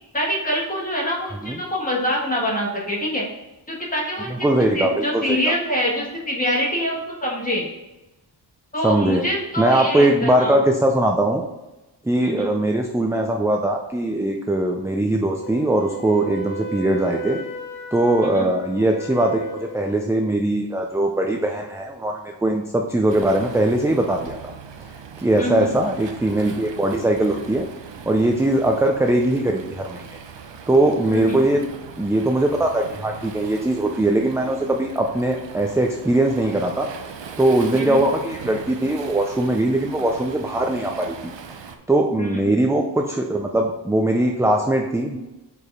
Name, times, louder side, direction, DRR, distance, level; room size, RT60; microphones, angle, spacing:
voice 1, 0.1-3.2 3.7-4.5 4.7-7.7 8.7-10.6 12.2-12.5 18.2-18.5 25.4-25.7 31.1-31.4 37.7-38.0 42.2-42.5, equal, 20° left, -3 dB, 1.6 m, -25 dB
voice 2, 4.3-5.5 8.8-9.2 9.6-11.4 12.0-17.4 17.9-24.5 25.2-27.7 28.1-30.0 30.7-31.6 32.0-36.9 37.4-41.3 41.9-45.2, right 1 dB, 5° right, 2 dB, 0.3 m, -21 dB
Wind instrument woodwind instrument, 15.4-20.1, right 1 dB, 45° left, 0.6 m, -35 dB
Waves surf, 23.1-41.8, right 6 dB, 70° right, 0.8 m, -39 dB
5.0 x 4.7 x 5.4 m, 0.99 s
wide cardioid pair, 175°, 46 cm